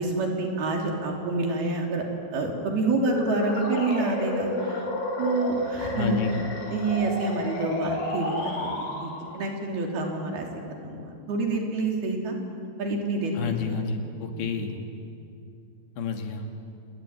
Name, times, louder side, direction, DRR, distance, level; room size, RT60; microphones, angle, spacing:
voice 1, 0.0-2.0 2.3-4.9 5.2-6.2 6.7-10.5 10.8-12.4 12.8-13.8 14.3-14.5, right 2 dB, 65° right, 1 dB, 5.1 m, -28 dB
sound 1, 2.9-9.4, left 1 dB, 70° left, 7.5 m, -31 dB
voice 2, 5.9-6.4 13.3-14.8 16.0-16.5, left 5 dB, 85° left, 4 dB, 4.3 m, -30 dB
28.0 x 22.0 x 9.7 m, 2.6 s
omnidirectional pair, 4.8 m